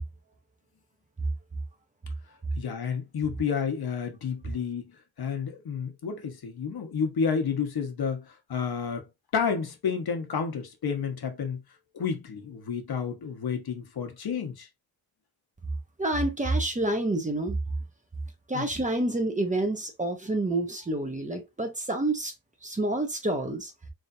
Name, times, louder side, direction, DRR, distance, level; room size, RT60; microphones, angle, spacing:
voice 1, 2.6-4.8 5.2-9.0 9.3-11.6 11.9-14.7 18.5-18.7, left 6 dB, 85° left, 1.1 m, -30 dB
voice 2, 16.0-17.6 18.5-22.3 22.6-23.7, right 2 dB, 20° right, 0.8 m, -28 dB
4.0 x 3.4 x 2.6 m
wide cardioid pair, 150°, 36 cm